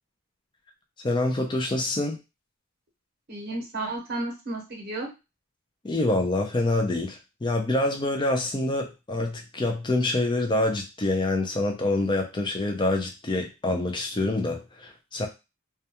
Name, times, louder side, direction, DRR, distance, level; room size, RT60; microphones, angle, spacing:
voice 1, 1.0-2.2 5.8-15.3, left 2 dB, 20° left, 3 dB, 0.4 m, -26 dB
voice 2, 3.3-5.1, right 2 dB, 45° right, 0 dB, 0.8 m, -32 dB
2.2 x 2.2 x 2.8 m, 0.26 s
head